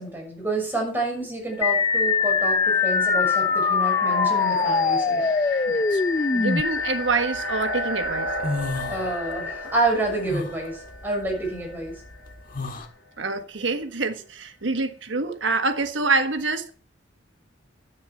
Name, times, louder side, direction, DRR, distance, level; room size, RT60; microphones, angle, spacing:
voice 1, 0.0-5.3 8.9-11.9, right 2 dB, 10° right, 6.4 m, -28 dB
sound 1, 1.5-12.3, left 3 dB, 75° left, 3.9 m, -31 dB
sound 2, 1.6-6.6, left 5 dB, 25° left, 0.5 m, -22 dB
voice 2, 6.3-8.3 13.2-16.7, right 3 dB, 90° right, 1.5 m, -26 dB
sound 3, 6.8-7.6 8.0-9.6 9.9-12.9, left 3 dB, 50° left, 1.7 m, -33 dB
10.5 x 9.3 x 6.1 m
head